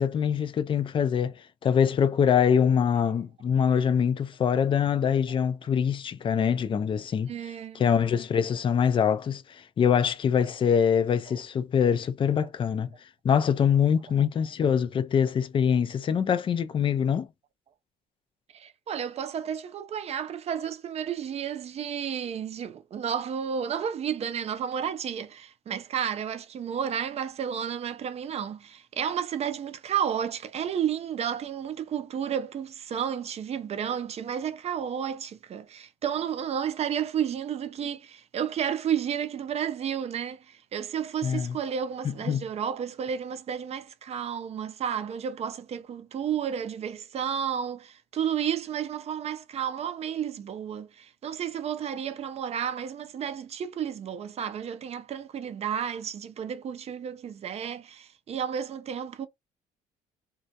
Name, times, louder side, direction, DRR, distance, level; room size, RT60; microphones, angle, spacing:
voice 1, 0.0-1.3 1.6-7.3 7.8-9.4 9.8-12.9 13.2-17.3 41.2-41.6 42.0-42.4, left 7 dB, 30° left, 0.3 m, -24 dB
voice 2, 7.3-7.9 12.4-12.5 18.5-59.3, right 8 dB, 40° right, 0.4 m, -32 dB
2.3 x 2.0 x 2.7 m
cardioid pair, 110°, 17 cm